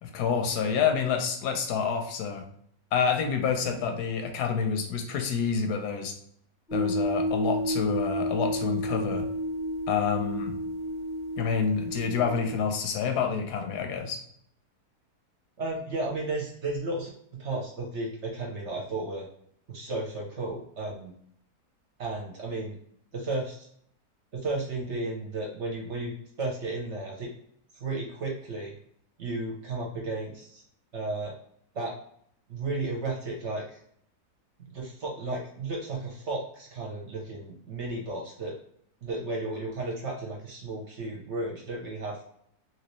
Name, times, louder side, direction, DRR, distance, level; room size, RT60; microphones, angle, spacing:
voice 1, 0.0-2.4 2.9-6.1 6.7-9.3 9.9-10.5 11.4-14.2, left 6 dB, 80° left, 4 dB, 1.1 m, -28 dB
sound 1, 6.7-12.7, equal, ahead, 0.9 m, -31 dB
voice 2, 15.6-17.1 17.4-19.3 19.7-21.1 22.0-22.8 23.1-23.7 24.3-26.1 26.4-27.3 27.7-28.8 29.2-30.6 30.9-31.3 31.7-31.9 32.5-33.8 34.7-38.6 39.0-42.2, right 2 dB, 55° right, -1 dB, 0.9 m, -33 dB
3.0 x 3.0 x 3.0 m, 0.66 s
omnidirectional pair, 1.7 m